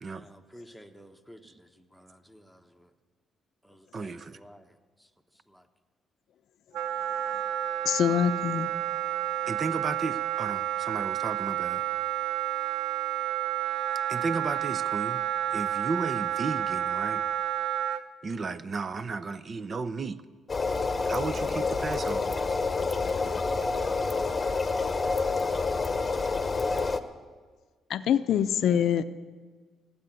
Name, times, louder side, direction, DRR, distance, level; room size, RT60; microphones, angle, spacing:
voice 1, 0.1-2.9 3.6-5.1 5.5-5.7, equal, 5° right, 8 dB, 1.2 m, -53 dB
voice 2, 3.9-4.4 9.4-11.9 13.9-15.2 15.5-17.2 18.2-20.2 21.1-22.4, right 4 dB, 40° right, 15 dB, 0.7 m, -34 dB
Wind instrument woodwind instrument, 6.7-18.0, right 11 dB, 80° right, 0.6 m, -30 dB
voice 3, 7.8-8.7 27.9-29.1, left 9 dB, 70° left, 13 dB, 0.6 m, -24 dB
sound 1, 20.5-27.0, left 4 dB, 30° left, 1.0 m, -28 dB
17.0 x 8.5 x 9.2 m, 1.5 s
cardioid pair, 90°, 0 cm